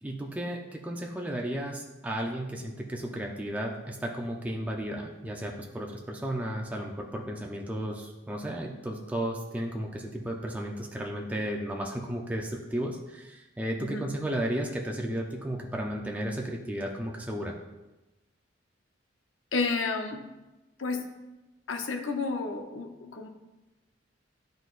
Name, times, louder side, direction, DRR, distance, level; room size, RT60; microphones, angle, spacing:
voice 1, 0.0-17.5, right 1 dB, 10° right, 0 dB, 0.5 m, -34 dB
voice 2, 19.5-20.2 20.8-21.0 21.7-23.3, left 4 dB, 85° left, 4 dB, 0.7 m, -31 dB
11.0 x 3.9 x 2.4 m, 1.1 s
head